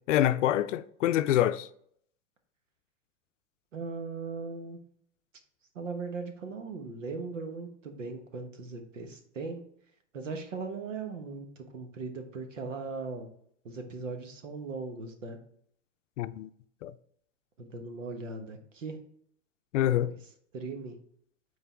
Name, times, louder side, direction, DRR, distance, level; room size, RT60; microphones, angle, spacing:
voice 1, 0.1-1.7 16.2-16.5 16.8-16.9 19.7-20.1, left 12 dB, 75° left, 0.5 m, -26 dB
voice 2, 3.7-4.8 5.7-9.6 10.1-13.3 13.6-15.4 17.6-19.0 20.0-20.2 20.5-21.0, right 4 dB, 85° right, 1.3 m, -38 dB
8.8 x 4.0 x 3.7 m
hypercardioid pair, 105°, 37 cm